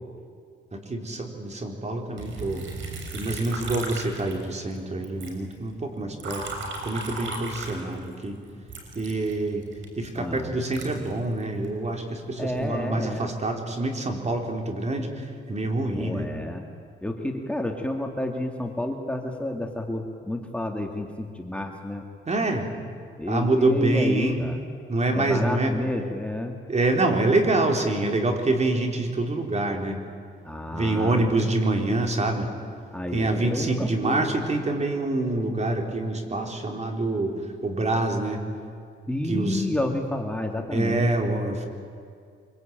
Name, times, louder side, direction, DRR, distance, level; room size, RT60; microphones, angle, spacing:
voice 1, 0.7-2.7 3.1-6.4 6.8-8.4 8.9-9.6 10.0-16.3 22.3-22.7 23.2-24.4 24.9-25.8 26.7-30.0 30.7-32.5 33.1-38.4 39.2-39.7 40.7-41.7, right 2 dB, 35° right, 3 dB, 4.2 m, -26 dB
Liquid, 2.2-4.8 5.0-8.2 8.7-11.7 12.3-12.8, right 3 dB, 75° right, 6.3 m, -37 dB
voice 2, 10.1-10.5 12.4-13.3 16.0-16.6 17.0-22.0 23.2-24.6 25.1-26.5 30.4-31.3 32.9-34.2 39.1-41.0, left 1 dB, 5° left, 2 dB, 2.3 m, -30 dB
24.5 x 23.5 x 9.1 m, 2.3 s
cardioid pair, 90°, 20 cm